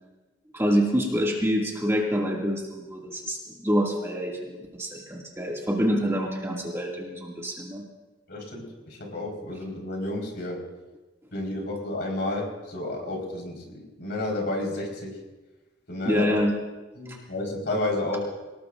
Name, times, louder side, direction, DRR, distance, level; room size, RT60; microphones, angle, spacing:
voice 1, 0.5-7.8 16.1-16.5 17.1-17.2, equal, 15° right, -2 dB, 2.3 m, -26 dB
voice 2, 8.3-10.7 11.3-15.2 15.9-16.4 17.0-18.3, left 2 dB, 60° left, 0 dB, 4.6 m, -31 dB
25.0 x 19.0 x 2.6 m, 1.1 s
head